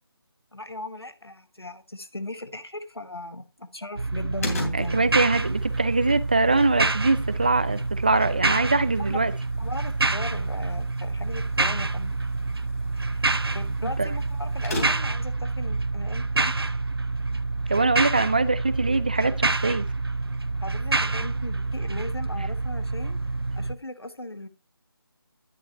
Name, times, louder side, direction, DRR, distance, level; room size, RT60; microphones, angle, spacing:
voice 1, 0.5-5.0 9.0-9.3 9.6-12.2 13.1-13.3 13.5-16.5 20.6-23.2 23.5-24.5, left 2 dB, 90° left, 1.5 m, -38 dB
sound 1, 4.0-23.7, right 3 dB, 75° right, 0.8 m, -27 dB
sound 2, 4.4-15.3, left 1 dB, 40° left, 2.8 m, -41 dB
voice 2, 4.8-9.3 14.0-14.1 17.7-19.9, right 3 dB, 20° right, 0.4 m, -23 dB
10.5 x 5.5 x 4.4 m
figure-of-eight pair, 160°, 13 cm